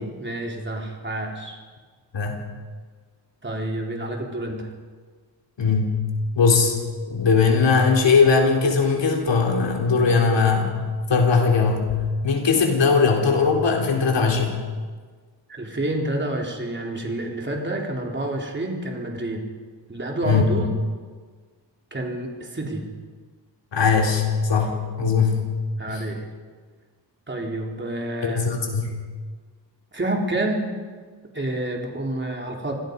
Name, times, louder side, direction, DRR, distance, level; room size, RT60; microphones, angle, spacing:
voice 1, 0.2-1.6 3.4-4.7 15.5-19.5 19.9-20.7 21.9-22.9 25.8-26.2 27.3-28.5 29.9-30.7 31.3-32.7, right 1 dB, 25° right, 0 dB, 4.0 m, -28 dB
voice 2, 5.6-6.0 6.4-6.8 7.1-10.8 11.1-12.0 12.2-14.6 20.2-20.4 23.7-25.4 25.9-26.0 28.2-29.0, left 5 dB, 75° left, 1 dB, 4.0 m, -19 dB
27.0 x 18.5 x 5.4 m, 1.5 s
wide cardioid pair, 120°, 44 cm